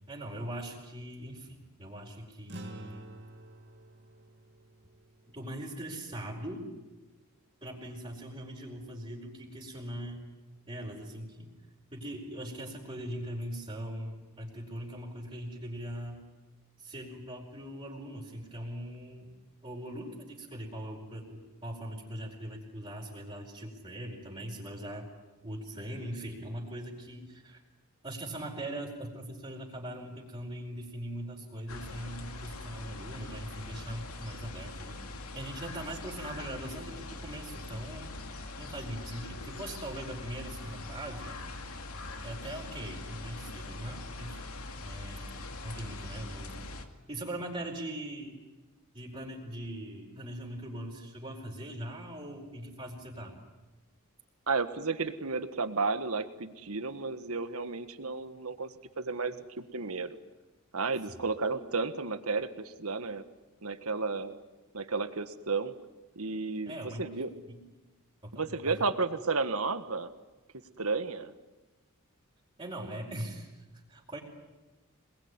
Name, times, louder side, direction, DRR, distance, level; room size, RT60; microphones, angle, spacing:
voice 1, 0.0-3.1 5.3-6.7 7.6-10.2 10.7-11.5 11.9-16.2 16.8-19.3 19.6-25.1 25.4-27.6 28.0-35.0 35.3-38.2 38.6-41.4 42.2-44.5 44.8-45.4 45.6-46.6 47.1-48.4 48.9-53.4 61.1-61.2 66.6-67.1 67.5-67.6 68.2-68.8 72.6-74.2, right 1 dB, 25° right, -3 dB, 4.7 m, -41 dB
sound 1, 2.5-7.1, right 1 dB, 55° right, 2.3 m, -50 dB
sound 2, 31.7-46.8, left 2 dB, 85° left, 2.5 m, -42 dB
voice 2, 54.5-60.2 60.7-63.2 63.6-64.4 64.7-65.7 66.1-67.3 68.3-70.1 70.8-71.3, right 4 dB, 80° right, 10 dB, 1.6 m, -32 dB
26.5 x 21.5 x 9.7 m, 1.1 s
head